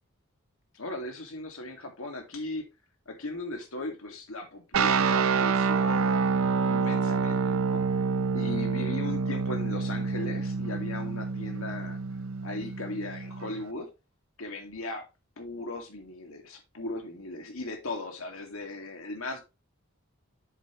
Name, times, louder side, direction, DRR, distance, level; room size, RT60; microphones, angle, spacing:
voice 1, 0.7-2.7 3.1-6.3 6.7-7.8 8.3-12.0 12.4-13.9 14.4-15.1 15.4-19.4, left 2 dB, 70° left, 2.2 m, -37 dB
sound 1, 4.7-13.6, right 5 dB, 70° right, 0.6 m, -27 dB
7.3 x 7.2 x 3.1 m
head